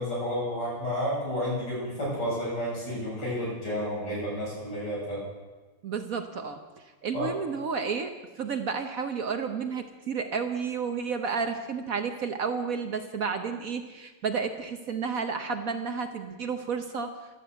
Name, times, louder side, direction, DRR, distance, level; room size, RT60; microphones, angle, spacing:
voice 1, 0.0-5.2 7.1-7.3, equal, 70° left, -5 dB, 7.8 m, -31 dB
voice 2, 5.8-6.6 7.0-8.1 8.4-17.1, right 5 dB, 55° right, 7 dB, 1.2 m, -31 dB
12.5 x 12.5 x 8.0 m, 1.2 s
omnidirectional pair, 2.0 m